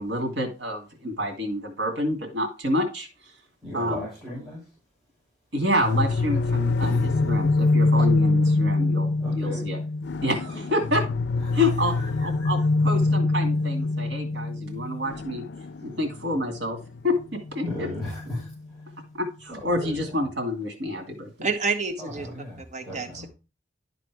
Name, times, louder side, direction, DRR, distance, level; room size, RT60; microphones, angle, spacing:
voice 1, 0.0-3.1 3.7-4.0 5.5-9.8 10.2-11.0 11.5-11.9 12.2-15.4 15.8-16.8 17.0-17.9 19.1-21.3, left 1 dB, 80° right, 3 dB, 2.4 m, -28 dB
voice 2, 3.6-4.6 6.8-7.0 9.2-9.6 10.4-10.8 11.5-11.6 11.9-12.5 17.6-18.5 19.6-20.2 22.0-23.3, left 1 dB, ahead, -5 dB, 4.9 m, -36 dB
sound 1, 5.8-18.6, left 3 dB, 70° left, 0.4 m, -25 dB
voice 3, 21.4-22.3 22.7-23.3, right 4 dB, 40° right, 6 dB, 0.9 m, -28 dB
11.5 x 4.1 x 4.7 m, 0.31 s
head